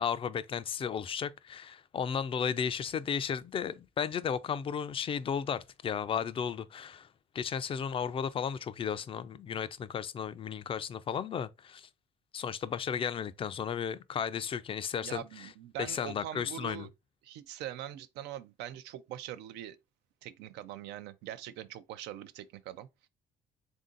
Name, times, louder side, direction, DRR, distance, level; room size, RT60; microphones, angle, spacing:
voice 1, 0.0-7.1 7.3-11.9 12.3-15.5 15.8-16.9, left 7 dB, 35° left, 0.4 m, -34 dB
voice 2, 15.0-16.9 17.2-19.8 20.2-22.9, right 11 dB, 85° right, 0.5 m, -43 dB
3.6 x 2.6 x 3.7 m
cardioid pair, 110°, 17 cm